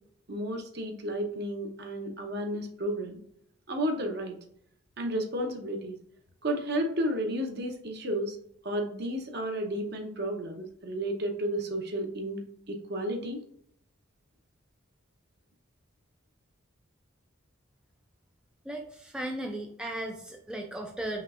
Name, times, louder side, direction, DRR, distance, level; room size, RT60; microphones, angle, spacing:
voice 1, 0.3-3.2 3.7-4.4 5.0-6.0 6.4-8.4 8.6-13.4, equal, 55° right, 3 dB, 0.8 m, -32 dB
voice 2, 18.7-21.2, right 1 dB, 5° right, 1 dB, 0.3 m, -36 dB
5.3 x 3.1 x 2.4 m, 0.69 s
head